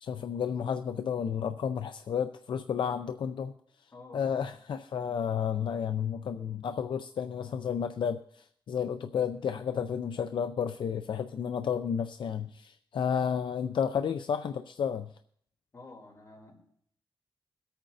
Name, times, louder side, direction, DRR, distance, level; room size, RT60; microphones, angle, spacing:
voice 1, 0.0-3.5 4.1-15.1, left 7 dB, 70° left, 8 dB, 0.4 m, -32 dB
voice 2, 3.9-4.4 15.7-16.6, left 2 dB, 35° left, -2 dB, 2.9 m, -50 dB
22.5 x 8.7 x 2.6 m, 0.66 s
wide cardioid pair, 180°, 9 cm